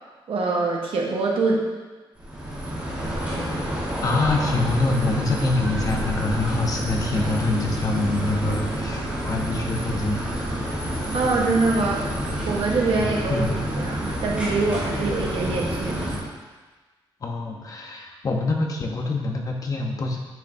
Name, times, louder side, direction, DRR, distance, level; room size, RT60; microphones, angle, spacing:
voice 1, 0.3-1.6 11.1-12.0 12.5-13.4 13.8-16.2, right 3 dB, 75° right, -2 dB, 1.3 m, -24 dB
sound 1, 2.2-16.2, equal, 15° right, 1.8 m, -28 dB
voice 2, 4.0-10.2 12.9-13.6 17.2-20.2, left 2 dB, 40° left, 1 dB, 0.9 m, -25 dB
9.0 x 6.0 x 2.7 m, 1.3 s
wide cardioid pair, 160°, 9 cm